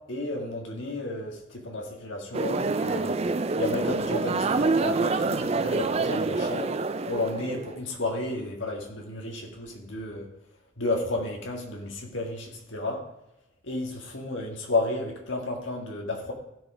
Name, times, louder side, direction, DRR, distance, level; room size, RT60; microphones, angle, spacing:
voice 1, 0.0-3.2 3.6-6.8 7.1-10.3 10.8-13.1 13.6-16.3, left 2 dB, 65° left, 2 dB, 2.0 m, -32 dB
sound 1, 2.3-7.8, right 3 dB, 30° right, 0.4 m, -27 dB
15.5 x 5.3 x 5.0 m, 0.88 s
head